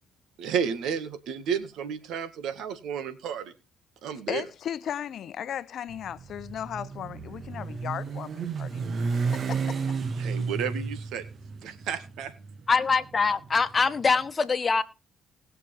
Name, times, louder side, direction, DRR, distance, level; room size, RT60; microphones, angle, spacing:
voice 1, 0.4-3.5 4.0-4.4 10.2-11.2 11.6-12.3, right 7 dB, 70° right, 1.8 m, -32 dB
voice 2, 4.3-8.8 9.3-9.8, left 9 dB, 60° left, 0.7 m, -36 dB
Motorcycle, 5.9-14.1, right 5 dB, 50° right, 1.4 m, -32 dB
voice 3, 12.7-14.8, left 4 dB, 35° left, 1.2 m, -23 dB
20.0 x 6.8 x 3.5 m
supercardioid pair, 60°, 0 cm